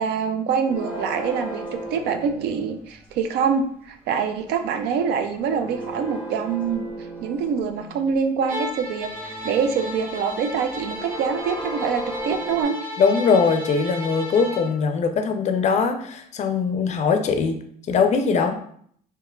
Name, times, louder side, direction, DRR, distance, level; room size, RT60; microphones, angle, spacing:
voice 1, 0.0-1.6 1.9-6.9 7.2-12.8, right 6 dB, 80° right, 7 dB, 0.4 m, -25 dB
sound 1, 0.6-3.1 5.0-8.2 8.7-12.6, right 2 dB, 10° right, 0.8 m, -36 dB
Bowed string instrument, 8.5-14.7, left 1 dB, 50° right, 0.9 m, -34 dB
voice 2, 13.0-17.6 17.9-18.6, left 5 dB, 45° left, 6 dB, 0.4 m, -21 dB
3.6 x 2.8 x 2.2 m, 0.64 s
cardioid pair, 110°, 17 cm